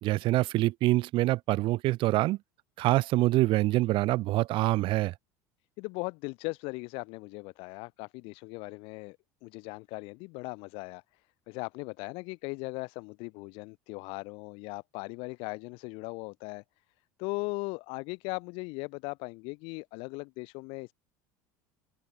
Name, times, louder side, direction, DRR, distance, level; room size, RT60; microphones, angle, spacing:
voice 1, 0.0-2.4 2.8-5.1, right 18 dB, 55° right, 1.8 m, -25 dB
voice 2, 5.8-9.2 9.4-16.6 17.2-20.9, left 28 dB, 60° left, 1.3 m, -38 dB
open air
hypercardioid pair, 80°, 10 cm